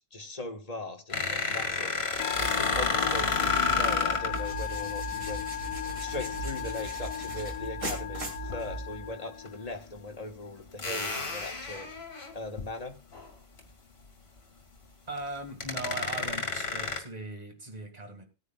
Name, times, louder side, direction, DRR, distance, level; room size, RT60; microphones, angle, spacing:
voice 1, 0.1-2.1 2.4-5.4 6.0-11.9 12.3-13.0, left 2 dB, 30° left, 4 dB, 1.4 m, -39 dB
sound 1, 1.1-4.4 6.5-6.8 8.4-8.6 9.5-9.6 10.8-12.6 13.1-13.3 13.6-13.7 15.2-15.3 15.6-17.0, left 4 dB, 50° left, 2.3 m, -30 dB
sound 2, 2.1-9.1, right 2 dB, 70° right, 2.9 m, -39 dB
Musical instrument, 2.2-9.8, left 11 dB, 75° left, 1.2 m, -36 dB
voice 2, 15.1-18.2, right 2 dB, 30° right, 4 dB, 2.0 m, -39 dB
19.0 x 9.6 x 2.3 m, 0.31 s
omnidirectional pair, 1.4 m